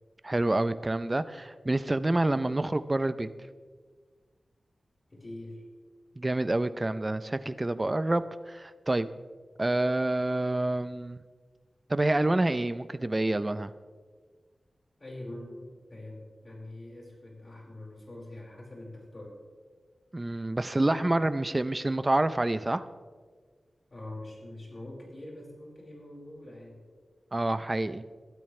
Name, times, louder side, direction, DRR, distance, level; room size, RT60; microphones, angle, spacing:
voice 1, 0.2-3.3 6.2-9.1 9.6-11.2 11.9-13.7 20.1-22.8 27.3-28.0, right 2 dB, 25° right, 13 dB, 0.6 m, -27 dB
voice 2, 5.1-5.6 15.0-19.4 23.9-26.8, left 1 dB, 35° left, -2 dB, 4.9 m, -44 dB
22.5 x 12.5 x 3.3 m, 1.5 s
wide cardioid pair, 100°, 0 cm